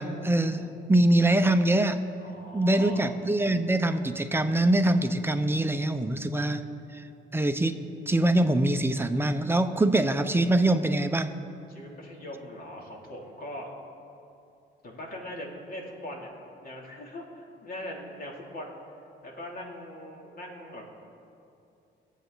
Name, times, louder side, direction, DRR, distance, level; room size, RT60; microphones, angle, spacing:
voice 1, 0.0-0.6 0.9-2.0 2.5-6.6 6.9-7.0 7.3-7.8 8.1-11.3, right 1 dB, 10° right, 8 dB, 0.8 m, -24 dB
voice 2, 2.2-3.1 11.7-13.7 14.8-16.3 16.6-18.8 19.2-20.8, left 1 dB, 50° left, -1 dB, 2.9 m, -41 dB
22.5 x 8.2 x 4.0 m, 2.7 s
cardioid pair, 90°, 20 cm